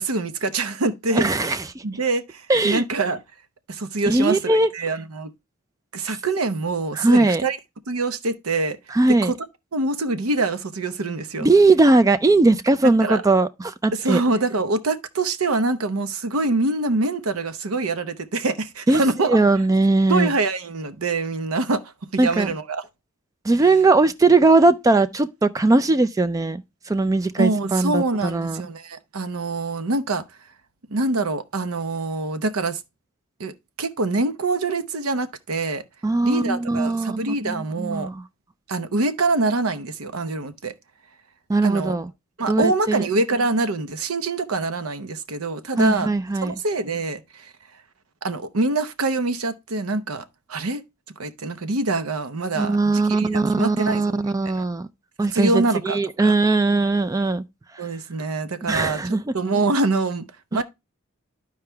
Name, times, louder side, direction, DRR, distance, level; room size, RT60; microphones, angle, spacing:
voice 1, 0.0-1.6 1.8-3.2 3.7-4.4 4.7-5.3 5.9-7.6 7.9-8.8 9.2-9.3 9.7-11.5 13.0-13.2 13.9-19.3 20.1-22.8 27.4-30.2 30.9-32.8 33.4-33.5 33.8-35.8 36.2-38.1 38.7-40.7 41.6-42.0 42.4-46.1 46.4-47.5 48.2-50.8 51.2-54.2 54.5-54.7 55.3-56.3 57.8-60.6, right 3 dB, 75° right, 0.8 m, -25 dB
voice 2, 1.1-1.8 2.5-2.8 4.1-4.7 7.0-7.4 8.9-9.3 11.4-14.2 18.9-19.0 19.3-20.3 22.2-22.5 23.4-26.6 26.9-28.6 36.0-38.2 41.5-42.1 42.5-43.1 45.8-46.5 52.6-54.9 55.2-57.4 58.7-59.2 60.5-60.6, right 3 dB, 15° right, 0.3 m, -19 dB
13.5 x 4.7 x 2.2 m
head